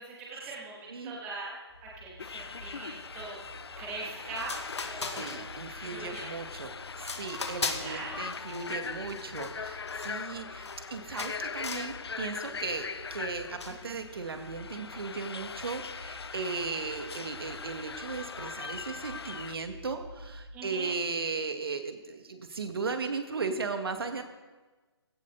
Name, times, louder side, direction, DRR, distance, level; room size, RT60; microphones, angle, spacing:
voice 1, 0.0-3.4 3.8-4.5 4.9-5.3 5.8-6.3 7.8-8.2 12.5-12.7 20.5-20.9, right 3 dB, 10° right, -5 dB, 2.5 m, -41 dB
voice 2, 0.8-1.2 5.0-24.2, right 4 dB, 60° right, 6 dB, 2.1 m, -36 dB
sound 1, 1.7-20.5, left 1 dB, 10° left, 3.2 m, -51 dB
sound 2, 2.2-19.6, left 5 dB, 70° left, 0.7 m, -41 dB
sound 3, 4.1-4.2 4.4-5.7 6.1-6.5 7.0-8.0 8.3-10.9 11.2-11.9 12.3-12.7 13.6-13.9, left 4 dB, 90° left, 2.3 m, -39 dB
18.5 x 16.5 x 4.1 m, 1.3 s
hypercardioid pair, 170°, 14 cm